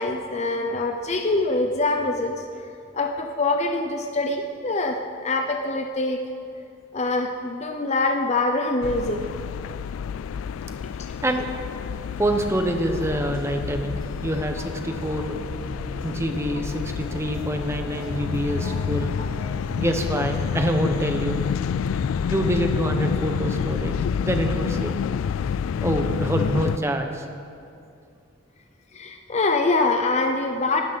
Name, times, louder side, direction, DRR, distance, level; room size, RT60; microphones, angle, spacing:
voice 1, 0.0-2.7 2.9-6.2 6.9-9.2 18.6-18.8 19.2-19.3 28.9-30.8, left 2 dB, 35° left, 4 dB, 0.7 m, -24 dB
sound 1, 8.8-26.8, left 7 dB, 90° left, 0.3 m, -28 dB
sound 2, 12.1-20.8, right 1 dB, 85° right, 4.2 m, -40 dB
voice 2, 12.2-15.4 16.0-19.1 19.8-21.4 22.3-24.0 24.2-24.9 25.8-27.3, right 1 dB, 15° right, 4 dB, 1.0 m, -26 dB
18.0 x 12.5 x 4.1 m, 2.6 s
head